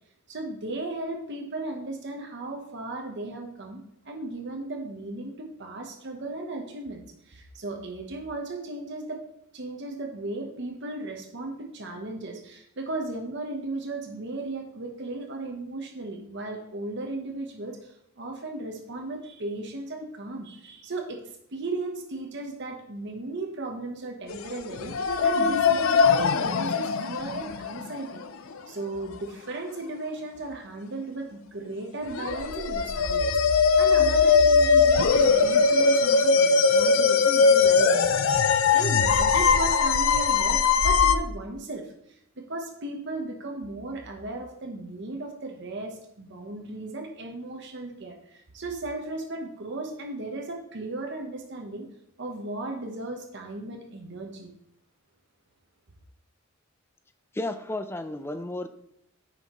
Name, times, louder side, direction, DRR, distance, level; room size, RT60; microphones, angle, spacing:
voice 1, 0.3-9.2 9.5-21.2 21.5-28.2 28.7-51.9 52.2-54.5, right 2 dB, 55° right, 2 dB, 1.0 m, -36 dB
sound 1, 24.3-24.4 24.8-28.2 32.1-41.2, left 5 dB, 70° left, 0.5 m, -21 dB
voice 2, 57.3-58.7, left 2 dB, 10° left, 10 dB, 0.4 m, -32 dB
9.7 x 5.6 x 3.1 m, 0.75 s
head